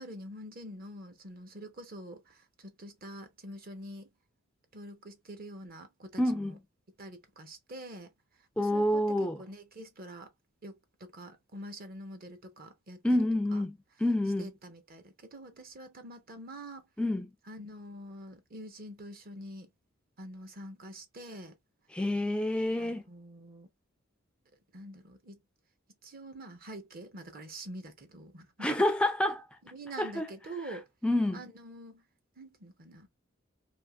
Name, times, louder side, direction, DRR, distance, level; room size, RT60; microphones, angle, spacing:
voice 1, 0.0-4.1 4.7-6.6 7.0-8.1 8.6-10.3 10.6-13.0 13.5-13.6 14.4-16.8 17.5-19.7 20.2-21.5 22.8-23.7 24.7-25.4 26.0-28.7 29.7-30.9 31.3-32.0 32.4-33.1, right 1 dB, 45° right, 0.8 m, -46 dB
voice 2, 6.2-6.6 8.6-9.4 13.0-14.5 17.0-17.3 21.9-23.0 28.6-29.5 30.0-30.3 31.0-31.4, left 1 dB, 5° left, 0.3 m, -28 dB
3.5 x 2.8 x 2.2 m
head